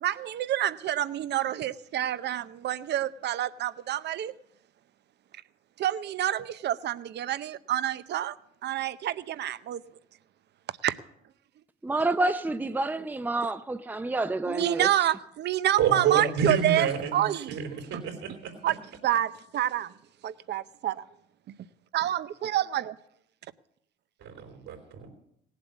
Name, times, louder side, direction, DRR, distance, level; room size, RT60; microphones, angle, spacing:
voice 1, 0.0-4.3 5.8-8.3 8.6-9.8 10.8-10.9 14.5-17.6 18.6-18.8 19.0-19.9 20.2-21.0 21.9-23.0, right 12 dB, 55° right, 0.7 m, -28 dB
voice 2, 11.9-14.9, right 2 dB, 10° right, 0.7 m, -28 dB
voice 3, 15.8-18.5 24.2-25.1, right 7 dB, 75° right, 3.6 m, -29 dB
17.5 x 7.6 x 8.2 m
supercardioid pair, 80°, 21 cm